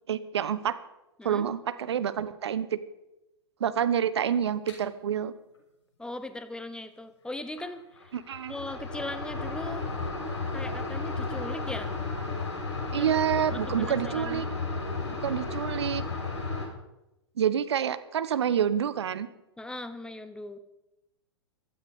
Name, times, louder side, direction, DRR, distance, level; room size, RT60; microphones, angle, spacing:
voice 1, 0.1-0.8 1.2-2.8 3.6-5.3 8.1-8.5 12.9-14.5 15.1-16.0 17.4-19.3, right 9 dB, 70° right, 15 dB, 0.9 m, -28 dB
sound 1, 4.7-4.8 7.6-7.7 8.0-16.7, left 3 dB, 75° left, 6.6 m, -33 dB
voice 2, 6.0-7.8 8.5-9.9 10.5-11.9 12.9-13.1 13.5-14.4 19.6-20.6, left 2 dB, 5° left, 11 dB, 1.0 m, -39 dB
16.0 x 13.0 x 5.3 m, 0.93 s
figure-of-eight pair, 105°, 15 cm